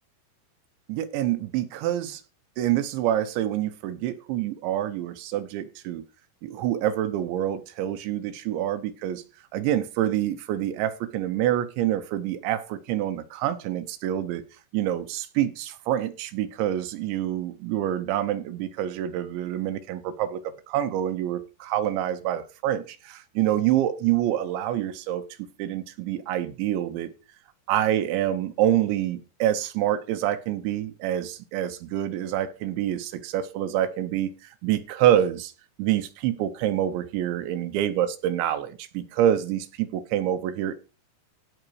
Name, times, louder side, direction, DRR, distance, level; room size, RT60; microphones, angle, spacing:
voice 1, 0.9-2.2 2.6-6.0 6.4-9.2 9.5-14.5 14.7-20.4 20.7-27.1 27.7-35.5 35.8-40.7, right 12 dB, 80° right, 3.3 m, -26 dB
16.0 x 6.4 x 4.7 m
omnidirectional pair, 5.2 m